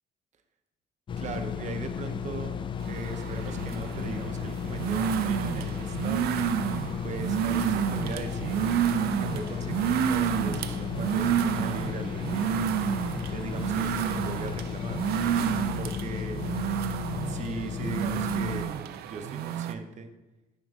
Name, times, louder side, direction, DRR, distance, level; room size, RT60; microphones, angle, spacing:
sound 1, 1.1-18.6, left 7 dB, 30° left, 0.3 m, -34 dB
voice 1, 1.2-2.6 2.8-6.4 7.0-8.6 9.2-12.5 13.3-15.0 15.8-16.4 17.2-20.1, right 4 dB, 45° right, 6 dB, 0.7 m, -39 dB
sound 2, 2.8-19.7, right 10 dB, 70° right, 0.4 m, -30 dB
6.1 x 5.3 x 3.6 m, 1.1 s
cardioid pair, 110°, 17 cm